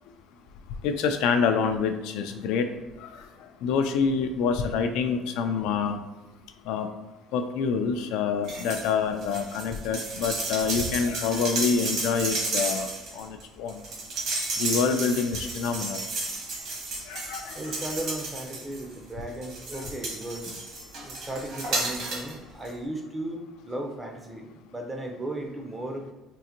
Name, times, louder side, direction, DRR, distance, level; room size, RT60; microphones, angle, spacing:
voice 1, 0.8-2.7 3.6-6.0 6.7-6.9 7.3-12.9 13.2-13.3 13.6-13.8 14.6-16.0 17.1-17.6, left 5 dB, 75° left, 7 dB, 0.3 m, -26 dB
sound 1, 8.4-8.9 9.2-18.9 19.4-22.3 22.6-22.7, right 2 dB, 55° right, 1.0 m, -32 dB
voice 2, 17.5-20.5 21.0-26.1, right 1 dB, 10° right, 3 dB, 0.4 m, -36 dB
3.7 x 2.5 x 2.8 m, 1.1 s
cardioid pair, 155°, 0 cm